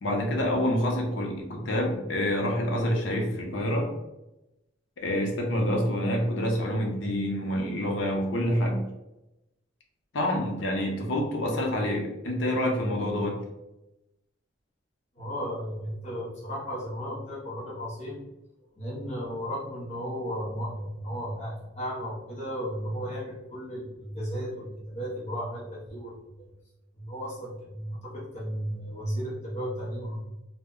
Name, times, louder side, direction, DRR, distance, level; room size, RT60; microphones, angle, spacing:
voice 1, 0.0-3.9 5.0-8.8 10.1-13.4, equal, 85° left, 0 dB, 0.6 m, -27 dB
voice 2, 15.2-18.2 18.8-26.5 27.0-30.3, equal, 35° left, -6 dB, 0.7 m, -34 dB
2.1 x 2.0 x 3.6 m, 0.95 s
head